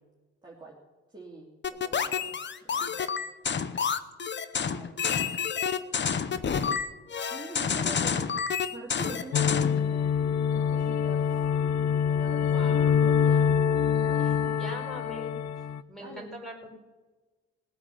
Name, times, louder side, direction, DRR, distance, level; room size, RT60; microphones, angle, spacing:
voice 1, 0.4-0.8 1.1-2.3 2.7-3.3 4.6-5.0 5.8-5.9 7.3-8.2 8.7-11.4 12.1-13.5 13.9-14.6 16.0-16.3, right 3 dB, 15° right, -5 dB, 2.9 m, -46 dB
sound 1, 1.6-9.8, left 6 dB, 40° left, 0.9 m, -29 dB
sound 2, 9.3-15.8, left 7 dB, 60° left, 0.6 m, -25 dB
voice 2, 12.4-12.9 14.1-16.7, equal, ahead, 0 dB, 4.6 m, -43 dB
19.0 x 8.5 x 7.0 m, 1.3 s
cardioid pair, 90°, 30 cm